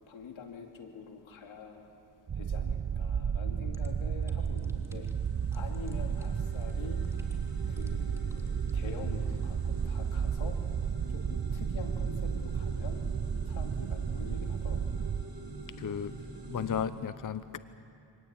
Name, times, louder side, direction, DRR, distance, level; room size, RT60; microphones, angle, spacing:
voice 1, 0.1-1.9 2.3-5.1 5.5-7.0 7.7-10.6 11.1-13.1 13.5-15.1, left 5 dB, 85° left, 3 dB, 2.5 m, -46 dB
sound 1, 2.3-15.2, right 7 dB, 35° right, 0.7 m, -33 dB
sound 2, 3.5-16.8, right 3 dB, 50° right, 3.2 m, -44 dB
sound 3, 3.7-3.9 4.2-5.3 5.5-5.9 6.2-6.3 6.6-7.5 7.8-8.7, right 1 dB, 5° right, 3.0 m, -57 dB
voice 2, 15.8-16.2 16.5-17.6, left 8 dB, 45° left, 13 dB, 0.8 m, -34 dB
25.0 x 19.0 x 8.8 m, 2.7 s
cardioid pair, 60°, 46 cm